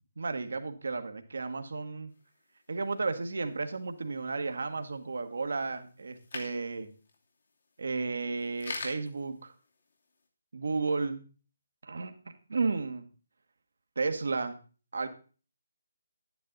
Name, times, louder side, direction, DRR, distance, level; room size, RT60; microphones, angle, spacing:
voice 1, 0.2-2.1 2.7-6.9 7.8-9.5 10.5-11.2 11.8-12.1 12.5-13.1 13.9-14.5 14.9-15.1, right 4 dB, 65° right, 8 dB, 1.3 m, -33 dB
sound 1, 2.1-10.2, left 3 dB, 60° left, 2.6 m, -48 dB
11.0 x 9.6 x 3.9 m, 0.37 s
figure-of-eight pair, 150°, 0 cm